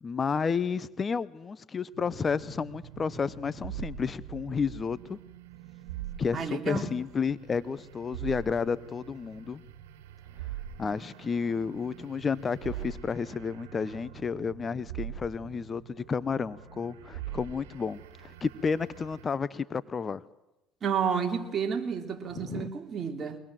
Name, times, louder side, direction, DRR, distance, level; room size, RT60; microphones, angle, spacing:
voice 1, 0.0-5.2 6.2-9.6 10.8-20.2 22.4-22.7, left 5 dB, 35° left, 0.8 m, -31 dB
sound 1, 1.9-19.3, right 11 dB, 85° right, 2.1 m, -44 dB
voice 2, 6.3-7.0 20.8-23.4, right 6 dB, 40° right, 3.3 m, -31 dB
23.5 x 20.0 x 7.6 m
supercardioid pair, 75°, 0 cm